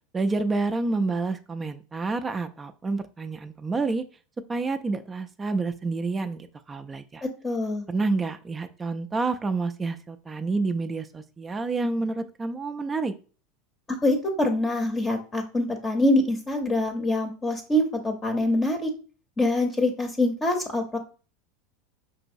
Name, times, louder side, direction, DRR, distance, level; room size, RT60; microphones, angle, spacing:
voice 1, 0.1-4.0 4.5-7.2 7.9-13.1, right 3 dB, 20° right, 7 dB, 0.4 m, -28 dB
voice 2, 7.4-7.8 13.9-18.9 19.4-21.0, left 1 dB, 20° left, 4 dB, 0.7 m, -24 dB
5.3 x 3.0 x 2.6 m, 0.36 s
supercardioid pair, 110°, 0 cm